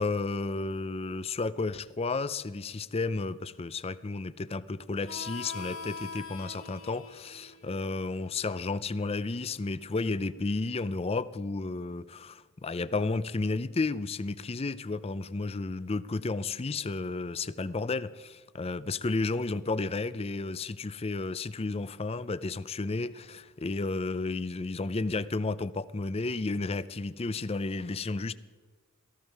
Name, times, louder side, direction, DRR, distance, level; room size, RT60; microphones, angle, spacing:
voice 1, 0.0-28.3, left 3 dB, 25° left, 16 dB, 0.5 m, -32 dB
Harmonica, 5.0-10.3, left 4 dB, 70° left, 2.4 m, -45 dB
18.0 x 15.0 x 4.7 m, 1.4 s
head